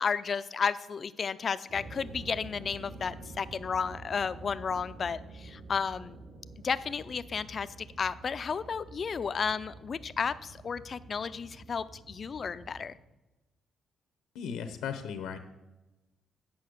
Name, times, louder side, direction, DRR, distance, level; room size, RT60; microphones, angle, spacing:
voice 1, 0.0-6.2 6.6-13.0, left 6 dB, 45° left, 14 dB, 0.4 m, -33 dB
sound 1, 1.7-12.9, right 2 dB, 55° right, 1.8 m, -48 dB
voice 2, 14.3-15.4, left 7 dB, 90° left, 9 dB, 0.8 m, -36 dB
8.5 x 5.6 x 6.4 m, 1.0 s
cardioid pair, 90°, 0 cm